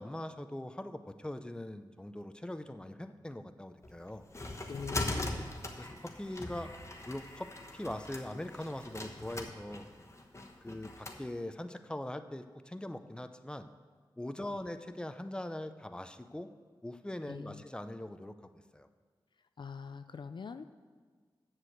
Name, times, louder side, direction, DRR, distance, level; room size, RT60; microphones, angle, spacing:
voice 1, 0.0-4.2 5.8-6.7 7.1-9.8 10.6-13.7 14.2-16.5 16.8-18.3 18.7-18.9, left 1 dB, 10° left, 9 dB, 0.6 m, -41 dB
sound 1, 3.8-11.2, left 2 dB, 30° left, 1.2 m, -41 dB
voice 2, 4.7-5.5 17.3-17.6 19.6-20.7, left 5 dB, 60° left, 10 dB, 0.4 m, -43 dB
7.4 x 6.3 x 7.9 m, 1.6 s
cardioid pair, 45°, 9 cm